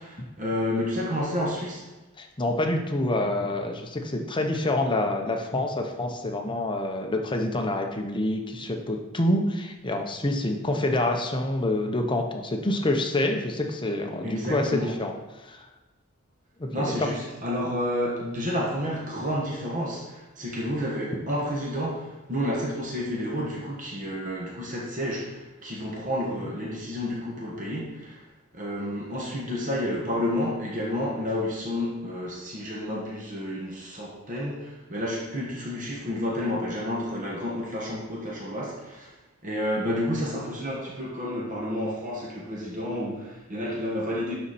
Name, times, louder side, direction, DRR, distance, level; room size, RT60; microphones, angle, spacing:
voice 1, 0.0-1.8 14.2-14.9 16.7-28.2 28.5-39.1 39.4-44.3, left 1 dB, 40° right, -3 dB, 1.3 m, -30 dB
voice 2, 2.2-15.6 16.6-16.9, left 1 dB, 25° left, 3 dB, 0.8 m, -27 dB
11.5 x 4.2 x 4.2 m, 1.1 s
head